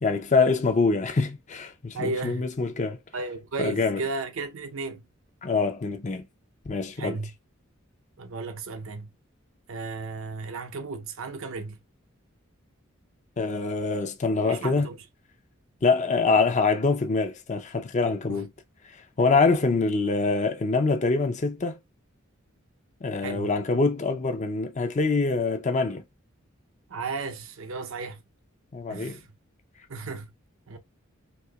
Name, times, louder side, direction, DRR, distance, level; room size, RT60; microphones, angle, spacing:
voice 1, 0.0-3.0 3.6-4.0 5.4-6.2 6.7-7.2 13.4-14.9 15.8-18.5 19.2-21.8 23.0-26.0 28.7-29.2, left 4 dB, 35° left, 0.5 m, -24 dB
voice 2, 1.9-2.5 3.1-5.1 7.0-7.3 8.2-9.1 9.7-11.8 14.4-15.0 18.3-18.5 23.2-23.5 26.9-28.2 28.9-29.3 29.9-30.3 30.7-30.8, right 3 dB, 75° right, 0.6 m, -34 dB
4.2 x 2.8 x 2.2 m
head